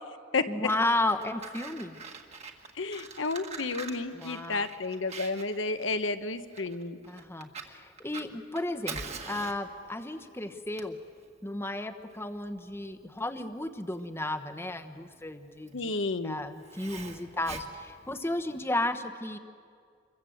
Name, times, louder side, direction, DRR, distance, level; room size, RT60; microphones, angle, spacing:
voice 1, 0.5-2.0 4.1-4.7 7.1-11.0 11.4-15.9 16.2-19.4, left 1 dB, 10° left, 8 dB, 1.1 m, -33 dB
Fire, 0.9-18.6, right 4 dB, 35° right, 1.8 m, -45 dB
voice 2, 2.8-7.0 15.7-16.4, left 3 dB, 70° left, 10 dB, 1.2 m, -31 dB
27.0 x 23.0 x 7.9 m, 2.2 s
head